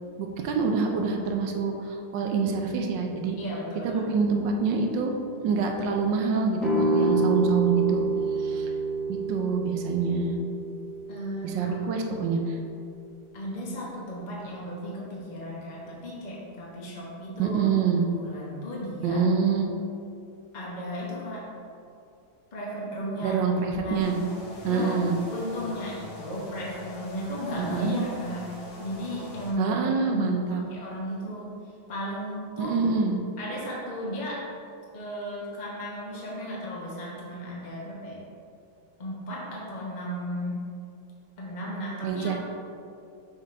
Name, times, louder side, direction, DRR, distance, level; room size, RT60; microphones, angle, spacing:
voice 1, 0.2-3.4 3.8-5.1 5.4-8.0 8.4-8.7 9.1-10.4 11.4-12.6 17.4-18.0 19.0-19.7 23.2-24.2 24.6-25.2 27.6-28.0 29.6-30.6 32.6-33.2 42.0-42.4, right 5 dB, 70° right, 3 dB, 1.2 m, -26 dB
voice 2, 3.4-4.0 11.1-11.8 13.3-17.6 18.2-19.3 20.5-21.5 22.5-23.4 23.8-24.1 24.6-25.0 25.3-28.5 28.8-29.8 30.1-31.5 31.9-32.8 33.4-34.5 34.9-38.2 39.0-40.6 41.4-42.5, equal, 40° left, -5 dB, 0.6 m, -35 dB
sound 1, 6.6-12.3, right 2 dB, ahead, 0.7 m, -28 dB
sound 2, 24.0-29.5, left 1 dB, 80° left, 1.9 m, -43 dB
6.3 x 3.7 x 4.3 m, 2.5 s
omnidirectional pair, 2.2 m